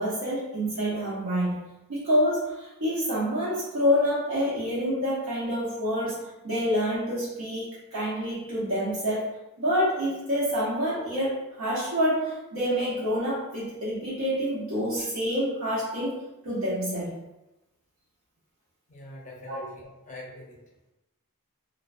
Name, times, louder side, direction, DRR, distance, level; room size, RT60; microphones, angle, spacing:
voice 1, 0.0-1.6 1.9-9.3 9.6-16.2 16.4-17.1 19.5-19.6, equal, 65° right, -9 dB, 0.7 m, -27 dB
voice 2, 18.9-20.6, left 2 dB, 35° left, -3 dB, 0.6 m, -44 dB
2.5 x 2.1 x 2.4 m, 0.98 s
head